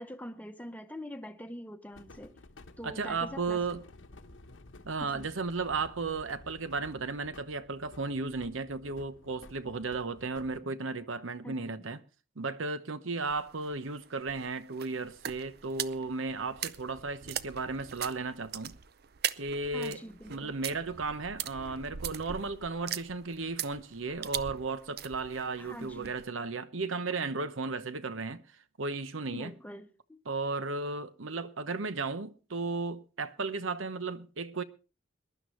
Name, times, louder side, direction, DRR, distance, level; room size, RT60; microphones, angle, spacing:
voice 1, 0.0-2.4 2.8-3.6 5.0-5.3 11.4-11.8 19.7-20.5 25.6-26.1 29.3-30.2, equal, 10° left, 0.9 m, -44 dB
sound 1, 1.9-10.6, left 2 dB, 75° left, 1.0 m, -53 dB
voice 2, 2.8-3.8 4.8-12.0 12.4-18.7 19.4-20.0 20.3-29.5 30.3-34.6, right 3 dB, 80° right, 1.0 m, -35 dB
sound 2, 13.3-26.3, right 9 dB, 50° right, 0.6 m, -41 dB
22.0 x 11.0 x 3.2 m
head